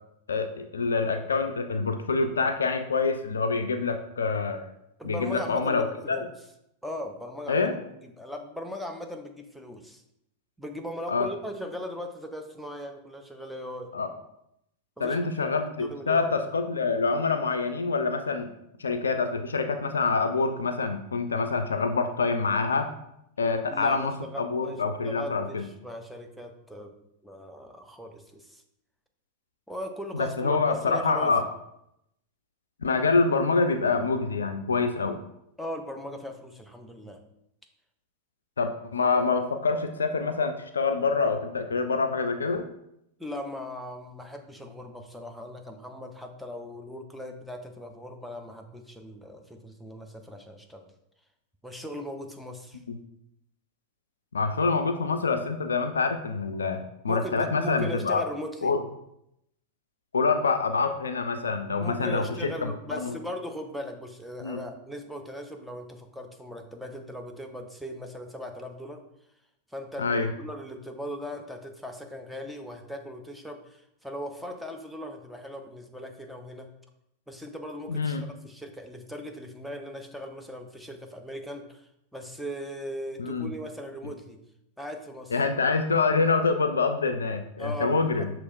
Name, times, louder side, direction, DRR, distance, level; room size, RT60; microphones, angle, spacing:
voice 1, 0.3-4.6 5.0-6.2 7.5-7.8 11.1-11.3 13.9-14.1 15.0-18.5 18.8-22.9 23.4-25.7 30.1-31.4 32.8-35.2 38.6-42.7 52.9-53.0 54.3-58.2 58.6-58.8 60.1-63.2 64.4-64.6 70.0-70.3 77.9-78.2 83.2-83.5 85.3-88.3, left 4 dB, 70° left, 8 dB, 0.3 m, -26 dB
voice 2, 5.0-6.3 6.8-7.7 8.0-10.0 10.6-13.9 15.0-15.2 15.8-16.4 23.7-26.9 27.2-28.6 29.7-31.3 35.6-37.2 43.2-50.9 51.6-52.8 57.1-58.7 61.8-69.1 69.7-76.7 77.3-78.2 78.4-84.4 84.8-85.3 87.6-88.3, equal, ahead, 3 dB, 0.5 m, -39 dB
6.1 x 3.0 x 2.5 m, 0.80 s
figure-of-eight pair, 90°, 0 cm